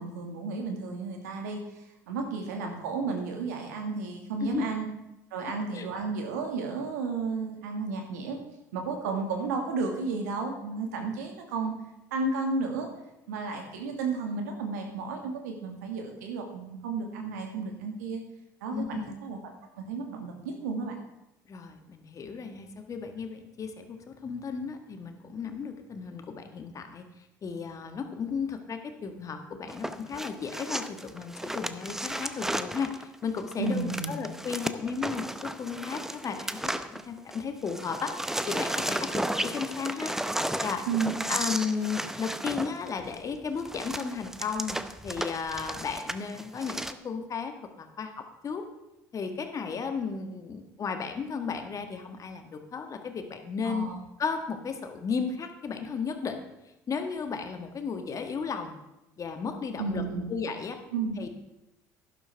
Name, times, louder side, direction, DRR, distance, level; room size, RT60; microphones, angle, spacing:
voice 1, 0.0-1.6 2.1-4.9 5.3-8.4 8.7-11.7 12.1-12.9 13.3-18.2 18.6-21.0 33.6-34.1 40.9-41.1 53.6-54.0 59.8-60.3 60.9-61.2, right 4 dB, 80° right, 3 dB, 1.8 m, -32 dB
voice 2, 4.4-4.8 5.7-5.9 18.7-19.1 21.5-40.1 40.6-40.8 41.3-48.6 49.1-53.9 54.2-56.4 56.9-58.7 59.2-60.0 60.3-60.8 61.2-61.3, left 5 dB, 40° left, 6 dB, 1.5 m, -34 dB
sound 1, 29.7-37.4 37.7-46.9, right 1 dB, 5° right, 0.7 m, -34 dB
12.0 x 11.0 x 3.4 m, 0.92 s
hypercardioid pair, 70°, 9 cm